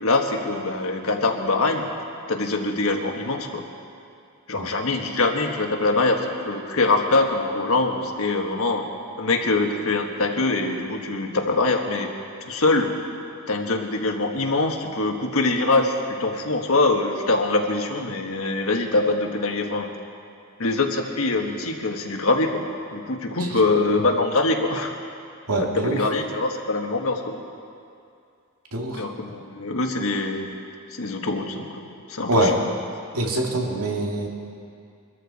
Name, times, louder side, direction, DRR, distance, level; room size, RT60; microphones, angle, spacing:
voice 1, 0.0-1.9 2.3-3.6 4.5-8.9 9.2-12.1 12.5-12.9 13.5-19.9 20.6-25.0 25.6-27.4 28.9-30.5 30.9-31.8 32.1-32.6, left 2 dB, 70° left, 3 dB, 1.5 m, -23 dB
voice 2, 25.5-26.0 28.7-29.0 32.3-32.5 33.1-34.3, right 1 dB, 90° right, 0 dB, 2.2 m, -23 dB
23.5 x 13.5 x 4.2 m, 2.5 s
head